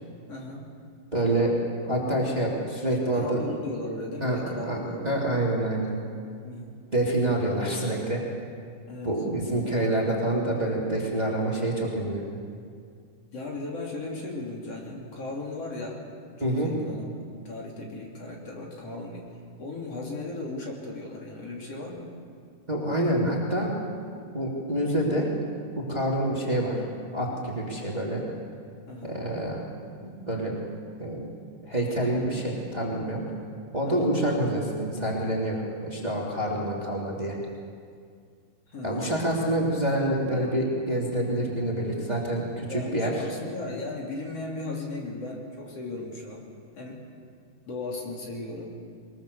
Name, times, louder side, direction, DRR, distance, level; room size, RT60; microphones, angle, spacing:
voice 1, 0.3-0.7 3.1-5.1 6.4-6.8 8.9-9.2 13.3-16.0 16.4-19.3 19.6-22.1 28.9-29.2 33.9-34.1 38.7-39.2 42.7-46.4 46.8-47.1 47.7-48.8, left 2 dB, 50° left, -2 dB, 4.0 m, -36 dB
voice 2, 1.1-3.4 4.2-4.8 5.0-5.9 6.9-8.2 9.0-12.2 16.4-16.7 22.7-23.7 24.3-25.3 25.7-26.8 27.1-28.2 29.0-29.6 30.0-30.6 31.0-31.2 31.6-33.2 33.7-37.3 38.8-43.1, right 1 dB, 15° right, -3 dB, 2.8 m, -27 dB
22.5 x 21.5 x 6.9 m, 2.2 s
omnidirectional pair, 3.5 m